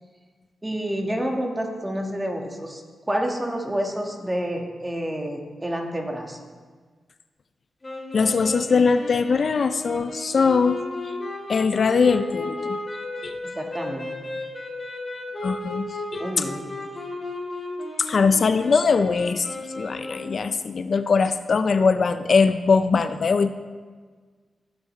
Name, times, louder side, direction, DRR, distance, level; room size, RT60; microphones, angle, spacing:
voice 1, 0.6-6.5 13.4-14.3 16.2-16.6, equal, 15° right, 2 dB, 1.5 m, -29 dB
sound 1, 7.8-20.4, left 2 dB, 30° left, 3.2 m, -34 dB
voice 2, 8.1-10.8 11.5-12.8 13.2-13.4 15.4-16.4 18.0-23.5, left 5 dB, 55° left, 11 dB, 0.4 m, -21 dB
16.5 x 7.4 x 3.2 m, 1.5 s
cardioid pair, 75°, 0 cm